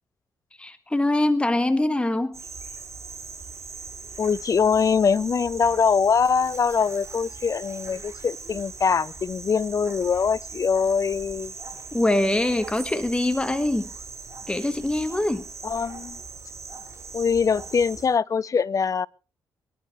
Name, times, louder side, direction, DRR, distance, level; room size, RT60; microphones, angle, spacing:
voice 1, 0.6-2.4 11.9-13.9 14.5-15.4, left 1 dB, 15° left, 1.6 m, -23 dB
sound 1, 2.3-18.1, right 4 dB, 35° right, 4.7 m, -40 dB
voice 2, 4.2-11.5 15.6-16.2 17.1-19.1, left 6 dB, 45° left, 0.6 m, -23 dB
23.0 x 11.5 x 3.2 m
supercardioid pair, 65°, 8 cm